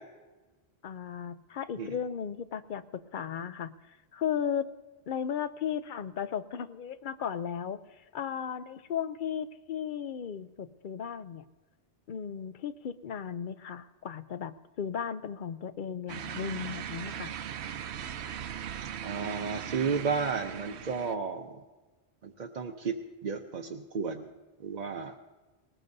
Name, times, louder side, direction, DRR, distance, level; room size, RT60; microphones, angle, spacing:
voice 1, 0.8-4.7 5.1-7.8 8.1-11.4 12.1-17.3, left 8 dB, 55° left, 13 dB, 0.7 m, -35 dB
sound 1, 16.1-21.2, right 9 dB, 85° right, 0.9 m, -39 dB
voice 2, 19.0-21.6 22.2-24.3 24.6-25.1, right 5 dB, 50° right, 2 dB, 0.7 m, -33 dB
20.0 x 19.5 x 2.7 m, 1.2 s
omnidirectional pair, 1.1 m